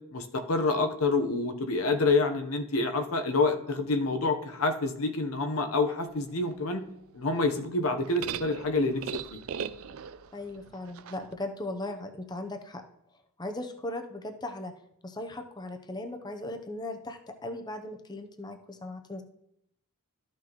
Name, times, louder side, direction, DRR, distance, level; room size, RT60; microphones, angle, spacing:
voice 1, 0.1-6.8 7.1-9.0 9.3-9.4, left 3 dB, 80° left, 6 dB, 0.8 m, -27 dB
sound 1, 6.1-11.3, right 7 dB, 75° right, 0.4 m, -41 dB
voice 2, 10.3-12.8 13.4-14.7 15.0-19.2, left 1 dB, 20° left, 5 dB, 0.6 m, -38 dB
13.0 x 6.1 x 2.9 m, 0.78 s
head